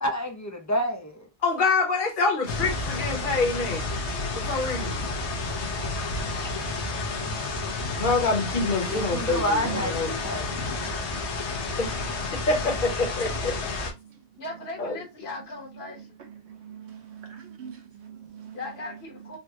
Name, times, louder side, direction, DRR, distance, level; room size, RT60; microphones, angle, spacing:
voice 1, 0.0-1.3 8.9-10.6, equal, 25° left, 0.4 m, -29 dB
voice 2, 1.4-3.9 4.5-5.0 8.0-10.1 11.8-11.9 12.5-13.3 13.7-13.9 14.8-15.0, left 3 dB, 50° left, 1.1 m, -26 dB
sound 1, 2.5-13.9, left 3 dB, 90° left, 1.1 m, -31 dB
voice 3, 4.5-4.8 5.5-5.9 6.1-8.5 8.9-9.8 10.1-11.3 11.5-12.5 13.2-14.4 15.7-19.4, right 8 dB, 85° right, 1.1 m, -45 dB
voice 4, 14.4-16.2 18.5-19.4, left 2 dB, 70° left, 1.3 m, -38 dB
3.8 x 2.1 x 2.7 m
omnidirectional pair, 1.1 m